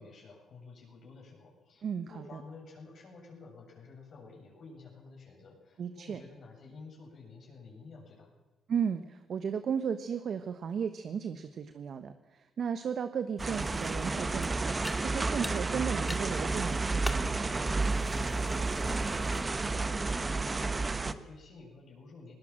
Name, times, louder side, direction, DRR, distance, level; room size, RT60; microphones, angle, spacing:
voice 1, 0.0-8.3 18.1-22.3, left 3 dB, 60° left, -1 dB, 7.9 m, -51 dB
voice 2, 1.8-2.4 5.8-6.2 8.7-14.7 15.0-17.4, right 7 dB, 55° right, 10 dB, 1.2 m, -35 dB
sound 1, 13.4-19.9, left 1 dB, 10° left, 2.2 m, -45 dB
sound 2, 13.4-21.1, right 3 dB, 25° right, 1.3 m, -31 dB
20.0 x 17.5 x 7.6 m, 1.2 s
cardioid pair, 90°, 0 cm